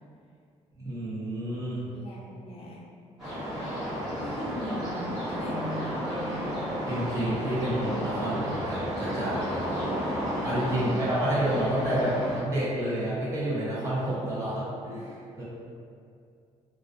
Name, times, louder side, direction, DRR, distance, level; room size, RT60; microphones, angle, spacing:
voice 1, 0.7-1.9 6.9-9.8 10.4-15.4, right 1 dB, 25° right, -10 dB, 0.7 m, -29 dB
voice 2, 1.9-2.8 3.2-6.8 10.7-11.1, left 1 dB, 50° left, -3 dB, 0.4 m, -40 dB
sound 1, 3.2-12.4, equal, ahead, 1.3 m, -32 dB
2.3 x 2.2 x 2.4 m, 2.4 s
cardioid pair, 165°, 12 cm